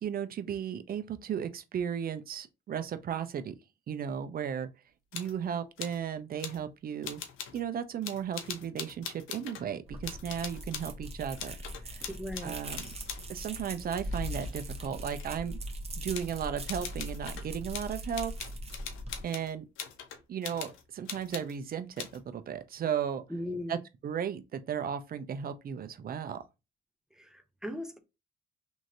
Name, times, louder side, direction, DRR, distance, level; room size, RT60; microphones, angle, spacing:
voice 1, 0.0-3.5 3.9-4.7 5.1-7.2 7.5-11.6 11.8-12.1 12.4-12.9 13.3-15.6 16.0-18.3 19.2-19.7 20.3-23.2 23.7-26.4, right 8 dB, 50° right, 0.5 m, -35 dB
sound 1, 5.1-5.4 5.8-6.0 6.4-6.6 7.0-7.6 8.0-9.7 10.0-11.0 11.4-13.3 13.9-15.4 16.1-16.4 16.7-21.6 22.0-22.2, left 8 dB, 85° left, 0.6 m, -42 dB
sound 2, 9.9-19.2, equal, 30° right, 0.9 m, -40 dB
voice 2, 12.1-12.6 23.3-23.8 27.2-28.0, left 1 dB, 5° right, 0.6 m, -38 dB
3.0 x 2.6 x 2.6 m
cardioid pair, 90°, 20 cm